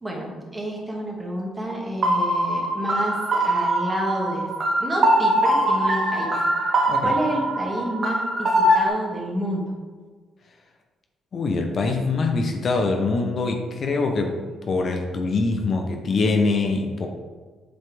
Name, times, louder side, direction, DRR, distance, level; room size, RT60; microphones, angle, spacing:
voice 1, 0.0-4.5 4.8-6.4 7.0-9.6, right 1 dB, 20° right, -2 dB, 1.9 m, -29 dB
sound 1, 2.0-8.9, right 1 dB, 45° right, 1.4 m, -22 dB
voice 2, 11.3-14.4 14.6-17.1, left 3 dB, 50° left, 3 dB, 0.8 m, -23 dB
7.8 x 5.6 x 3.4 m, 1.4 s
cardioid pair, 90°, 0 cm